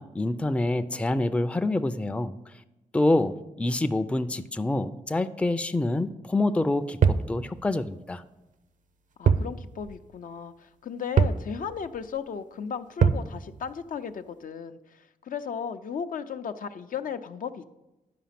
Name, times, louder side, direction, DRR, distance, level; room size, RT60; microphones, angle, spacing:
voice 1, 0.0-2.4 2.9-8.2, left 2 dB, 10° left, 10 dB, 0.4 m, -26 dB
sound 1, 7.0-7.3 9.3-9.5 9.8-9.9 11.2-11.5 13.0-13.3, right 6 dB, 60° right, 0.6 m, -21 dB
voice 2, 9.2-17.6, left 7 dB, 65° left, 9 dB, 0.5 m, -35 dB
10.5 x 5.0 x 5.8 m, 0.99 s
cardioid pair, 75°, 15 cm